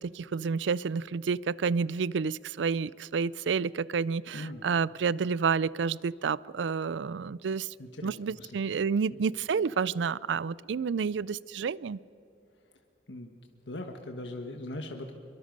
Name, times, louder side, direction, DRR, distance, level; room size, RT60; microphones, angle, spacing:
voice 1, 0.0-7.7 8.0-12.0, right 5 dB, 85° right, 22 dB, 0.4 m, -30 dB
voice 2, 7.8-8.1 8.4-8.5 9.1-9.2 13.1-13.3 13.7-15.1, left 1 dB, 80° left, 4 dB, 1.4 m, -39 dB
24.0 x 23.0 x 5.3 m, 2.9 s
head